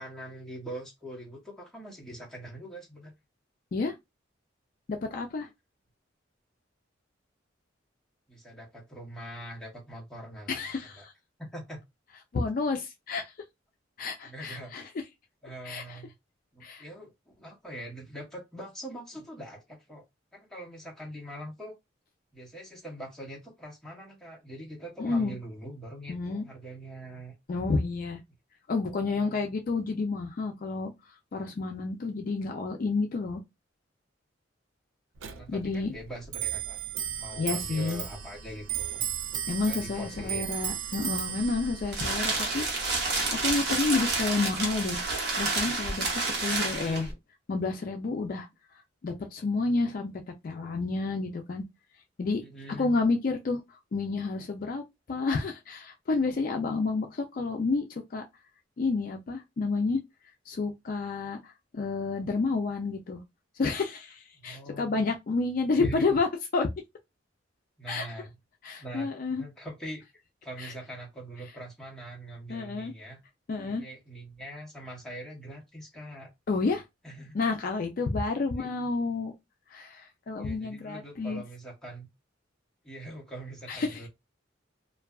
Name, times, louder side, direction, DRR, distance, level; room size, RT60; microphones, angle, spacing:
voice 1, 0.0-3.1 8.3-10.6 11.0-11.1 11.4-11.8 14.2-14.7 15.4-16.1 16.5-20.0 20.3-21.8 22.3-27.4 29.0-29.5 35.4-36.8 37.2-39.0 39.6-40.5 42.5-43.0 46.5-47.2 52.4-52.9 64.3-65.0 65.8-66.1 67.8-68.3 68.8-69.1 69.4-73.2 73.6-76.3 77.0-77.4 78.4-78.7 80.4-82.1 82.8-84.1, right 1 dB, ahead, 0.8 m, -43 dB
voice 2, 4.9-5.5 10.5-11.1 12.3-13.3 14.0-14.8 15.6-16.0 16.6-16.8 25.0-25.4 26.1-26.5 27.5-28.2 28.7-30.9 31.3-33.4 35.5-35.9 37.4-38.0 39.5-45.0 45.4-47.1 47.5-48.5 49.0-51.6 52.2-52.4 52.7-53.6 53.9-54.8 55.1-58.2 58.8-60.0 60.5-63.2 63.6-66.3 66.5-66.7 67.9-68.1 68.6-69.4 70.6-70.7 72.5-72.9 73.5-73.8 76.5-76.8 77.3-79.3 79.7-81.4 83.7-84.0, left 3 dB, 45° left, 0.4 m, -30 dB
Clock, 35.2-45.1, right 10 dB, 85° right, 0.4 m, -36 dB
sound 1, 41.4-47.1, right 3 dB, 60° right, 0.8 m, -29 dB
2.6 x 2.3 x 2.3 m
head